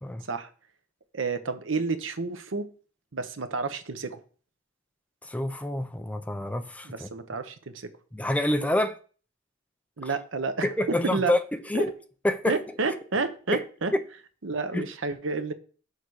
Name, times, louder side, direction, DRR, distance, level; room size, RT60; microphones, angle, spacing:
voice 1, 1.1-2.7 3.1-4.2 6.8-7.9 10.0-11.3 11.7-11.9 12.5-13.9 14.4-15.5, right 4 dB, 85° right, 0.8 m, -30 dB
voice 2, 5.3-7.1 8.1-8.9 10.6-11.9 12.2-12.5 13.5-13.6 13.9-14.0 14.7-14.9, left 1 dB, 5° left, 0.5 m, -27 dB
6.6 x 5.4 x 4.8 m
head